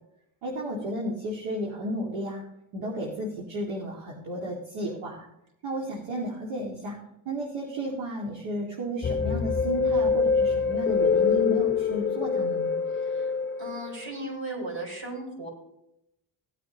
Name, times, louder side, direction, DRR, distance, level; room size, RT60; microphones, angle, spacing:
voice 1, 0.4-2.4 2.7-5.2 5.6-7.0 7.3-12.8, right 1 dB, 75° right, -3 dB, 2.4 m, -33 dB
sound 1, 9.0-14.1, left 5 dB, 25° left, 0.7 m, -25 dB
voice 2, 12.9-13.3 13.6-15.5, right 1 dB, 60° right, -1 dB, 5.0 m, -36 dB
18.0 x 9.1 x 3.0 m, 0.80 s
supercardioid pair, 60°, 50 cm